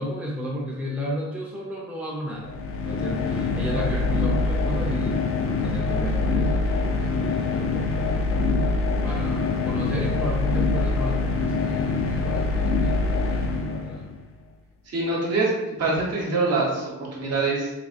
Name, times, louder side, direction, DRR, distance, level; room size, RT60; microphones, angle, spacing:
voice 1, 0.0-2.5 2.8-5.2 5.6-14.0, equal, 5° right, -4 dB, 0.6 m, -34 dB
sound 1, 2.4-14.2, left 3 dB, 50° left, 0.5 m, -24 dB
voice 2, 14.9-16.8 17.1-17.7, right 3 dB, 55° right, -3 dB, 1.0 m, -24 dB
3.0 x 2.5 x 2.5 m, 0.99 s
cardioid pair, 90°, 30 cm